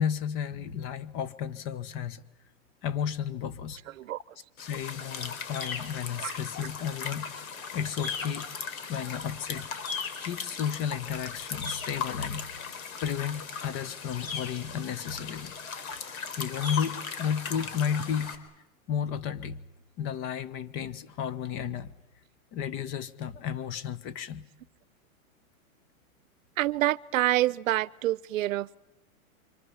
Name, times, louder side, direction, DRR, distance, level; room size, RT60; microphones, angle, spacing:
voice 1, 0.0-2.2 2.8-3.8 4.6-7.3 7.7-8.5 8.9-9.7 10.2-12.5 13.0-15.6 15.9-16.0 16.4-18.3 18.9-19.6 20.0-21.9 22.5-24.5, left 8 dB, 30° left, 1.3 m, -33 dB
sound 1, 4.6-18.3, left 6 dB, 70° left, 4.0 m, -37 dB
voice 2, 26.6-28.8, right 15 dB, 65° right, 0.9 m, -27 dB
27.0 x 25.5 x 7.3 m
hypercardioid pair, 155°, 43 cm